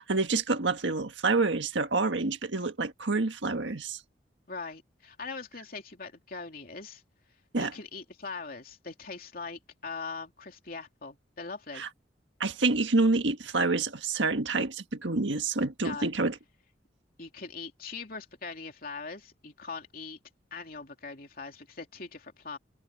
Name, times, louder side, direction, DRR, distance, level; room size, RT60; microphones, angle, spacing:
voice 1, 0.0-4.0 7.5-7.7 11.7-11.9 12.4-16.4, right 3 dB, 80° right, 1.6 m, -27 dB
voice 2, 4.5-7.0 7.6-11.8 15.8-16.1 17.2-20.2 20.5-22.6, left 4 dB, 50° left, 3.1 m, -41 dB
head